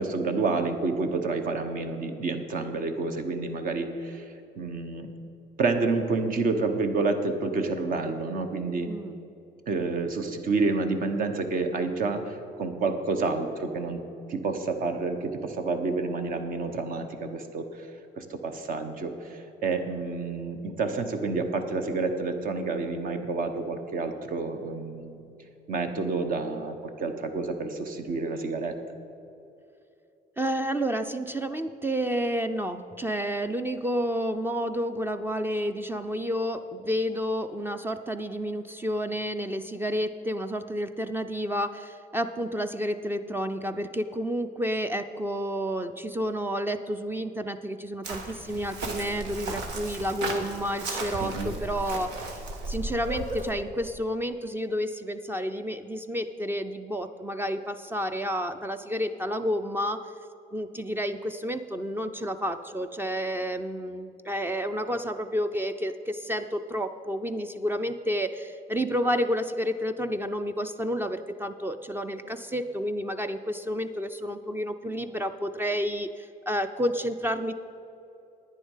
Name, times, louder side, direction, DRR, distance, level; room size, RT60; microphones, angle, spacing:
voice 1, 0.0-5.1 5.6-8.9 9.7-14.0 14.3-17.9 18.2-25.2 25.7-28.8 51.2-51.5, right 3 dB, 55° right, 6 dB, 1.2 m, -29 dB
voice 2, 8.9-9.2 30.4-60.1 60.5-77.5, equal, 10° right, 9 dB, 0.5 m, -30 dB
Chirp tweet, 48.0-53.5, right 2 dB, 85° right, 1.6 m, -35 dB
10.5 x 9.5 x 5.6 m, 2.7 s
cardioid pair, 110°, 17 cm